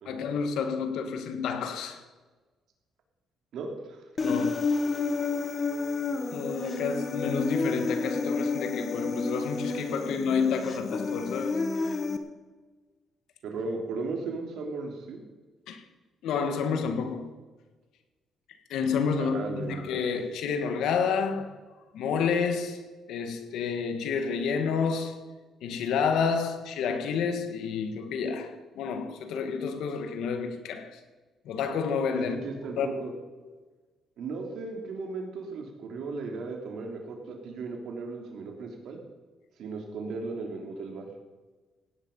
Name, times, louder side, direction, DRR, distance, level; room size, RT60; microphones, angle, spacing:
voice 1, 0.1-2.0 4.2-4.6 6.3-11.6 15.7-15.8 16.2-17.3 18.7-21.5 21.9-22.8 23.1-25.2 25.6-31.0 31.5-32.4 32.8-33.0, left 6 dB, 85° left, 1.9 m, -29 dB
voice 2, 3.5-4.4 13.4-15.2 19.2-19.8 32.1-33.1 34.2-39.0 39.6-41.1, right 3 dB, 75° right, 3.3 m, -36 dB
Human voice, 4.2-12.2, left 4 dB, 35° left, 1.6 m, -30 dB
17.0 x 9.8 x 5.6 m
cardioid pair, 90°, 0 cm